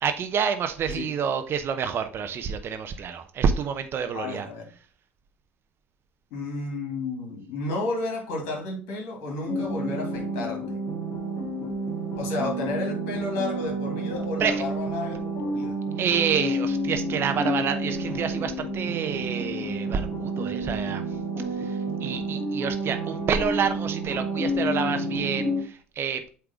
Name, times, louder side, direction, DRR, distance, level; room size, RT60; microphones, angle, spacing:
voice 1, 0.0-4.5 14.4-14.5 16.0-21.0 21.6-26.3, right 7 dB, 40° right, 0.8 m, -28 dB
voice 2, 4.1-4.7 6.3-10.8 12.2-15.8, left 3 dB, 60° left, 2.6 m, -32 dB
sound 1, 9.5-25.6, right 1 dB, 35° left, 1.9 m, -30 dB
7.9 x 3.5 x 3.7 m
figure-of-eight pair, 60°, 6 cm